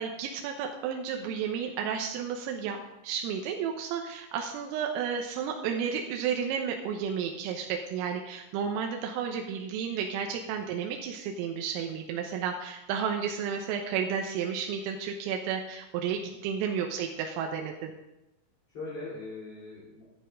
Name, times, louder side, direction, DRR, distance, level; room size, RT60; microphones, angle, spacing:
voice 1, 0.0-2.8 3.0-17.9, right 7 dB, 85° right, 2 dB, 3.6 m, -32 dB
voice 2, 16.2-16.6 18.7-20.1, left 3 dB, 30° left, -8 dB, 4.0 m, -41 dB
12.0 x 10.0 x 5.4 m, 0.92 s
omnidirectional pair, 5.9 m